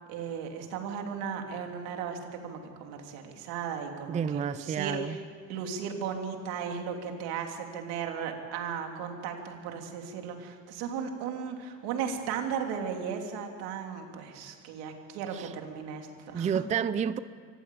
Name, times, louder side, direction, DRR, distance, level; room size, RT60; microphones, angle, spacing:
voice 1, 0.1-5.2 5.5-16.6, right 7 dB, 80° right, 3 dB, 3.2 m, -36 dB
voice 2, 4.1-5.2 15.3-15.5 16.3-17.2, right 7 dB, 20° right, 14 dB, 0.4 m, -30 dB
25.0 x 15.0 x 8.5 m, 2.2 s
cardioid pair, 140°, 37 cm